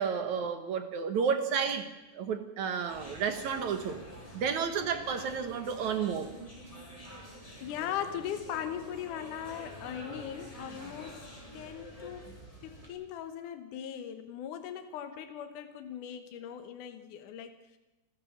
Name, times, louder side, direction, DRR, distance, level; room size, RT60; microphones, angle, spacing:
voice 1, 0.0-1.9 2.1-4.0 4.3-6.3, right 6 dB, 65° right, 9 dB, 1.9 m, -31 dB
sound 1, 2.9-12.9, equal, 10° left, 5.6 m, -47 dB
voice 2, 7.1-12.3 12.6-17.8, left 9 dB, 70° left, 7 dB, 2.0 m, -39 dB
28.0 x 14.5 x 7.2 m, 1.1 s
omnidirectional pair, 5.0 m